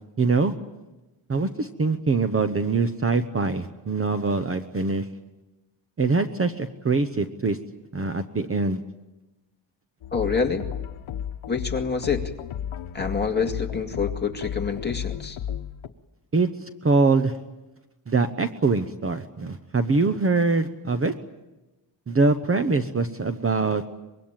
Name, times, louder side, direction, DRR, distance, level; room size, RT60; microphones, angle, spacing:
voice 1, 0.2-0.5 1.3-5.1 6.0-7.6 7.9-8.8 16.3-16.5 16.8-17.3 18.1-21.1 22.1-23.8, right 3 dB, 30° right, 9 dB, 0.9 m, -23 dB
sound 1, 10.0-15.9, left 9 dB, 70° left, 1.2 m, -33 dB
voice 2, 10.1-10.6 11.5-12.2 12.9-15.4, left 5 dB, 20° left, 2 dB, 2.2 m, -26 dB
24.5 x 22.5 x 8.9 m, 1.0 s
wide cardioid pair, 175°, 48 cm